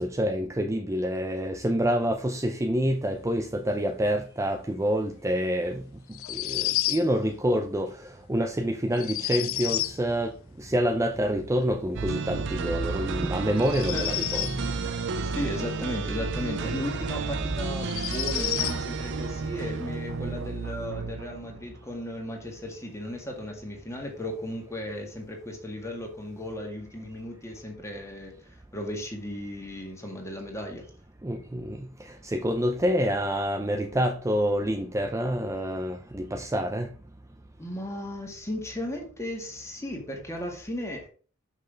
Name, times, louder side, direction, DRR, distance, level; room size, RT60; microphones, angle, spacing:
voice 1, 0.0-15.0 15.3-15.4 31.2-36.9, equal, 15° right, 0.5 m, -27 dB
sound 1, 6.1-7.1 8.9-10.0 13.6-14.6 16.8-16.9 17.8-18.8, left 14 dB, 70° left, 0.5 m, -30 dB
sound 2, 11.9-21.8, right 4 dB, 60° right, 0.6 m, -32 dB
voice 2, 15.2-30.9 37.6-41.1, left 1 dB, 15° left, 1.9 m, -36 dB
6.2 x 5.4 x 5.1 m
head